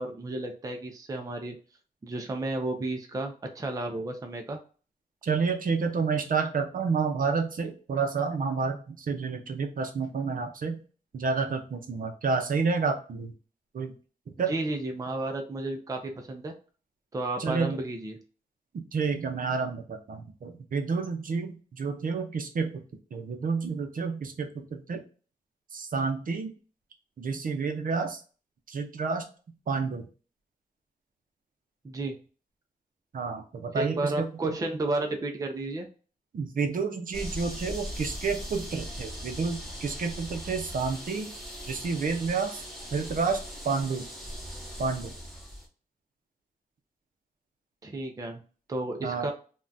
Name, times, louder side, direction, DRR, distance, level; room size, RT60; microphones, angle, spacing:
voice 1, 0.0-1.6 2.0-4.6 14.5-16.5 17.1-18.2 31.8-32.1 33.7-35.9 47.8-48.4 48.7-49.3, right 2 dB, 25° right, 4 dB, 0.4 m, -32 dB
voice 2, 5.2-10.8 11.1-13.3 13.7-13.9 14.3-14.5 17.4-17.8 18.7-22.8 23.1-25.0 25.7-26.5 27.2-28.2 28.7-29.3 29.7-30.1 33.1-34.5 36.3-41.3 41.7-42.6 42.9-43.4 43.6-44.1 44.8-45.1 49.0-49.3, right 5 dB, 65° right, 5 dB, 0.6 m, -30 dB
sound 1, 37.1-45.7, equal, ahead, 0.9 m, -39 dB
3.6 x 2.2 x 2.6 m, 0.38 s
wide cardioid pair, 170°, 15 cm